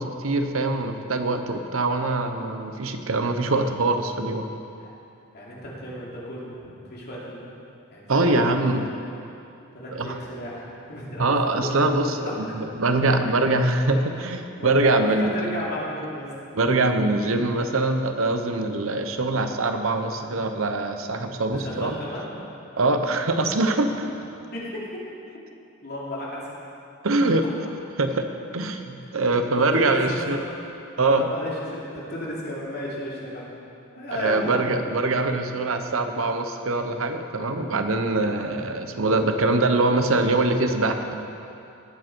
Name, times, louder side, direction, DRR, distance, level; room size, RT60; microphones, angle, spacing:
voice 1, 0.0-4.4 8.1-8.8 9.9-10.1 11.2-15.3 16.6-22.0 22.8-24.1 27.0-27.4 28.0-28.2 28.5-30.4 31.0-31.2 34.1-41.1, right 2 dB, 80° right, 7 dB, 0.9 m, -23 dB
voice 2, 5.3-7.5 7.9-8.8 9.7-11.8 12.2-12.6 14.6-16.3 21.5-22.3 24.5-25.0 25.8-26.5 29.1-29.2 29.7-30.4 31.1-33.6 33.9-34.8, left 1 dB, 50° left, -5 dB, 2.8 m, -34 dB
19.0 x 7.7 x 4.5 m, 2.6 s
head